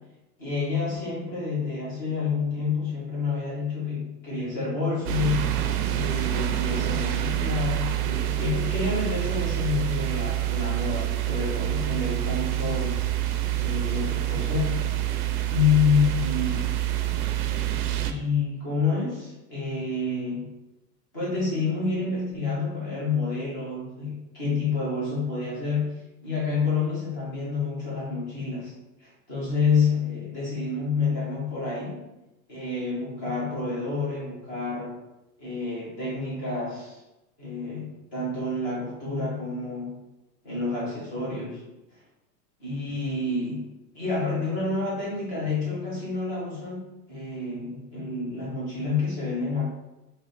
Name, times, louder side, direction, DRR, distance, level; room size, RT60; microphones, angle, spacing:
voice 1, 0.4-15.1 15.5-16.7 18.0-20.5 21.1-25.9 26.2-28.7 29.0-32.0 32.5-35.0 35.4-37.0 37.4-39.9 40.4-41.6 42.6-43.7 43.9-49.7, left 4 dB, 15° left, -7 dB, 0.4 m, -28 dB
sound 1, 5.0-18.1, right 13 dB, 70° right, 0.5 m, -27 dB
3.2 x 2.7 x 3.9 m, 0.98 s
supercardioid pair, 165°, 49 cm